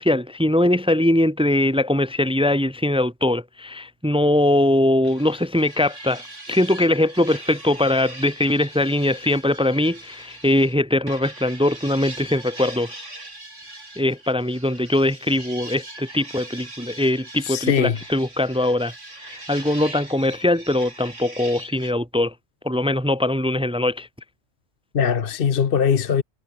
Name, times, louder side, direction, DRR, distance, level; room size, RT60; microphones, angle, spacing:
voice 1, 0.0-6.2 6.5-13.0 14.0-18.9 19.3-22.3 22.6-24.1, left 1 dB, 5° right, 1.2 m, -21 dB
sound 1, 5.0-10.7 11.1-21.9, right 2 dB, 70° right, 6.7 m, -41 dB
voice 2, 17.5-18.0 24.9-26.2, left 7 dB, 50° left, 1.0 m, -20 dB
omnidirectional pair, 1.3 m